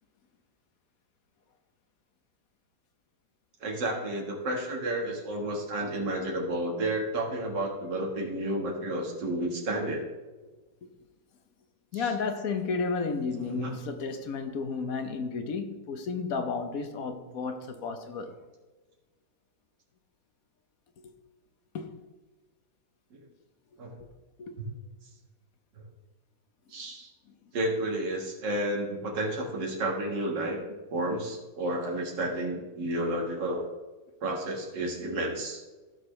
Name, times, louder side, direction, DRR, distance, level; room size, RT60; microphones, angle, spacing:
voice 1, 3.6-10.0 11.9-12.1 13.4-13.8 23.1-23.2 23.8-24.0 26.7-27.1 27.5-30.6 30.9-33.7 34.2-35.6, right 1 dB, 80° right, 2.3 m, -31 dB
voice 2, 11.9-18.3 21.7-21.9 24.4-24.6, left 4 dB, 60° left, 1.3 m, -32 dB
15.5 x 6.6 x 3.3 m
omnidirectional pair, 1.9 m